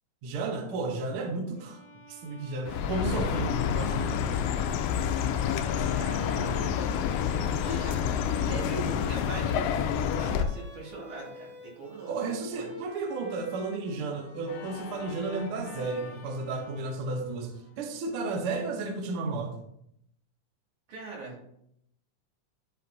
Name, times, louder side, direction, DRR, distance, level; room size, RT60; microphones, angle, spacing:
voice 1, 0.2-1.8 2.1-4.4 7.7-7.8 12.1-19.5, right 3 dB, 60° right, 3 dB, 1.5 m, -33 dB
Bowed string instrument, 1.5-17.6, equal, 15° left, 1.5 m, -49 dB
Chirp tweet, 2.7-10.5, left 8 dB, 90° left, 1.4 m, -28 dB
voice 2, 5.9-8.0 8.2-12.7 20.9-21.5, right 2 dB, 80° right, -4 dB, 3.8 m, -42 dB
Organ, 14.4-19.3, left 7 dB, 70° left, 1.7 m, -48 dB
11.5 x 5.2 x 2.7 m, 0.75 s
omnidirectional pair, 3.5 m